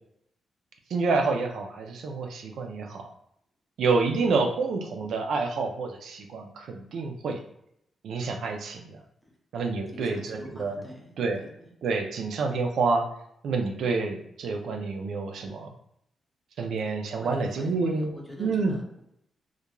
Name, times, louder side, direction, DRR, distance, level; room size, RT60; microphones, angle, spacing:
voice 1, 0.9-3.1 3.8-7.4 8.0-9.0 9.5-10.8 11.2-11.4 11.8-13.0 13.4-15.7 16.6-18.1 18.4-18.8, right 4 dB, 75° right, 4 dB, 0.3 m, -28 dB
voice 2, 4.1-4.5 9.9-11.5 16.8-16.9 17.2-19.0, equal, ahead, -1 dB, 0.5 m, -44 dB
2.4 x 2.2 x 2.9 m, 0.74 s
wide cardioid pair, 150°, 0 cm